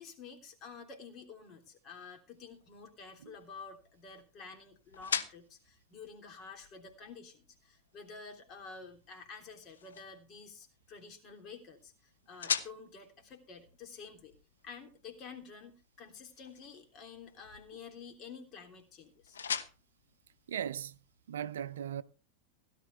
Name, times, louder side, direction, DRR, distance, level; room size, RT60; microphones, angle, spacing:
voice 1, 0.0-14.3 14.6-19.4, left 5 dB, 35° left, 3.3 m, -50 dB
sound 1, 2.4-21.2, left 7 dB, 70° left, 1.1 m, -44 dB
voice 2, 20.5-21.0 21.3-22.0, right 9 dB, 60° right, 0.5 m, -38 dB
16.5 x 12.0 x 3.4 m
figure-of-eight pair, 90°, 0 cm